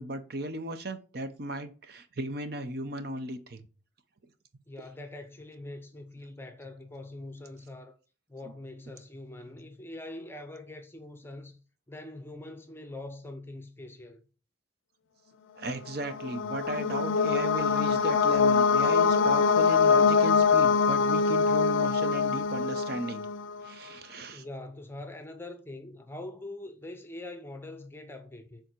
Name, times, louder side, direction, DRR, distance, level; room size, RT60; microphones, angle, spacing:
voice 1, 0.0-3.7 8.4-8.5 15.6-23.2 23.6-24.5, right 1 dB, 55° right, 0.7 m, -36 dB
voice 2, 4.7-8.0 8.3-11.6 11.9-14.2 24.3-28.6, left 2 dB, 10° left, 0.7 m, -43 dB
sound 1, 15.9-23.7, left 5 dB, 80° left, 0.4 m, -24 dB
7.0 x 3.9 x 4.5 m
head